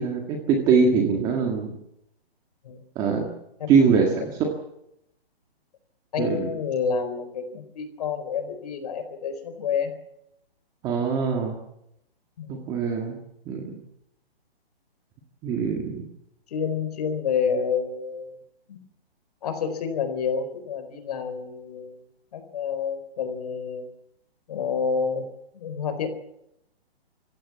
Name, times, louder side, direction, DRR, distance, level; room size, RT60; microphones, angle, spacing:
voice 1, 0.0-1.7 3.0-3.2 3.7-4.5 6.2-6.5 10.8-11.6 12.5-13.2 13.5-13.6 15.4-16.0, right 5 dB, 15° right, 2 dB, 1.7 m, -22 dB
voice 2, 3.6-4.1 6.1-9.9 12.4-12.5 16.5-18.3 18.7-18.8 19.4-22.0 22.3-23.9 24.5-25.3 25.5-26.1, left 6 dB, 40° left, 9 dB, 4.3 m, -29 dB
26.0 x 15.5 x 7.3 m, 0.80 s
hypercardioid pair, 170°, 32 cm